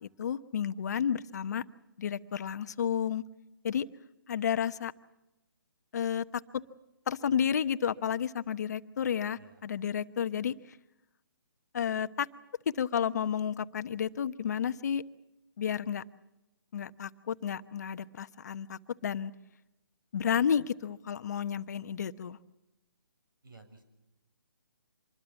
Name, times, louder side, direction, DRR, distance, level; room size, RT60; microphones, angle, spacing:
voice 1, 0.0-1.6 2.0-3.2 3.6-3.9 4.3-4.9 5.9-6.2 7.1-10.5 11.7-12.3 12.8-15.0 15.6-16.0 16.7-19.3 20.1-22.4, left 8 dB, 50° left, 11 dB, 1.0 m, -31 dB
voice 2, 23.4-23.8, right 3 dB, 70° right, 8 dB, 7.2 m, -54 dB
26.0 x 21.5 x 7.1 m, 0.93 s
hypercardioid pair, 155°, 12 cm